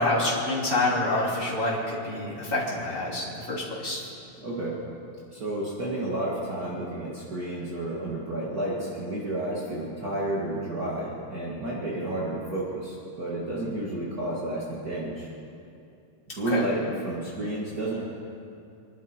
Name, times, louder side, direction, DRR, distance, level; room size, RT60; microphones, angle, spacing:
voice 1, 0.0-4.1 16.4-16.6, left 2 dB, 25° left, -6 dB, 3.2 m, -27 dB
voice 2, 4.4-4.8 5.3-15.3 16.4-18.0, right 1 dB, 45° right, -5 dB, 2.3 m, -31 dB
24.5 x 11.5 x 4.5 m, 2.6 s
omnidirectional pair, 2.4 m